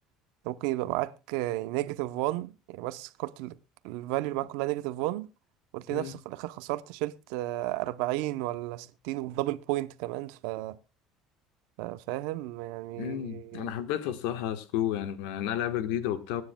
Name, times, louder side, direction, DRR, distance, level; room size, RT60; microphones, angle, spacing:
voice 1, 0.4-3.6 3.8-5.3 5.7-10.8 11.8-13.7, right 17 dB, 75° right, 0.7 m, -33 dB
voice 2, 13.0-16.4, left 11 dB, 80° left, 1.3 m, -31 dB
24.5 x 9.6 x 2.2 m
cardioid pair, 180°, 0 cm